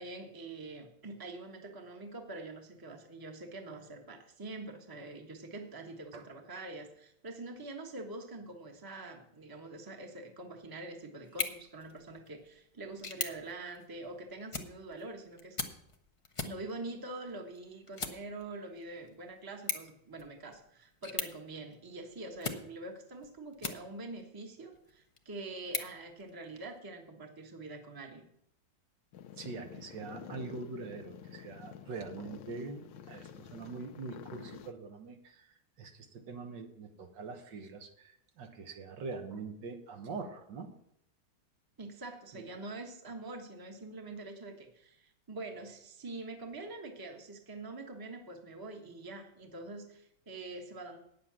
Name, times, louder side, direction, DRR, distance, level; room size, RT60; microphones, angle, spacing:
voice 1, 0.0-15.6 16.4-28.2 41.8-51.0, right 2 dB, 15° right, 3 dB, 1.0 m, -45 dB
sound 1, 11.2-24.2 24.7-26.8, left 3 dB, 40° left, 0.4 m, -43 dB
sound 2, 29.1-34.7, left 8 dB, 85° left, 1.5 m, -49 dB
voice 2, 29.4-40.7 42.3-42.4, right 4 dB, 75° right, 5 dB, 1.8 m, -43 dB
9.5 x 7.6 x 7.4 m, 0.75 s
omnidirectional pair, 2.0 m